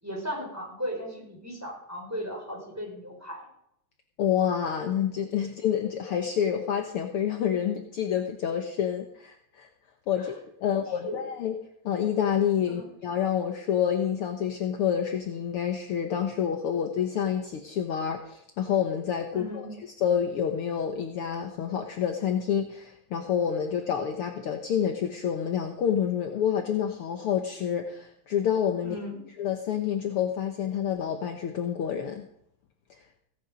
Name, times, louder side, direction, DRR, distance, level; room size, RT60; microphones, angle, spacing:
voice 1, 0.0-3.5 10.2-10.3 10.6-11.2 12.7-12.9 19.3-19.7 28.8-29.2, equal, 5° right, -1 dB, 4.7 m, -37 dB
voice 2, 4.2-9.7 10.1-10.3 10.6-11.5 11.8-19.7 20.0-29.0 29.4-32.3, left 8 dB, 70° left, 4 dB, 1.3 m, -28 dB
17.0 x 11.0 x 5.1 m, 0.74 s
omnidirectional pair, 3.8 m